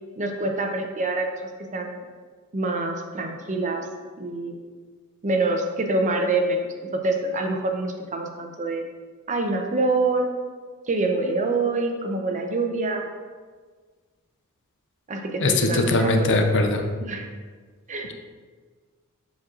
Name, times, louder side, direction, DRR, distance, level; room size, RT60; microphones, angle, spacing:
voice 1, 0.2-1.3 1.6-2.0 2.5-3.9 4.2-4.6 5.2-8.9 9.3-10.3 10.9-13.1 15.1-16.4 17.0-17.3 17.9-18.1, right 2 dB, 35° right, 3 dB, 0.6 m, -26 dB
voice 2, 15.4-16.8, left 2 dB, 60° left, 5 dB, 0.6 m, -20 dB
7.2 x 6.2 x 2.5 m, 1.5 s
head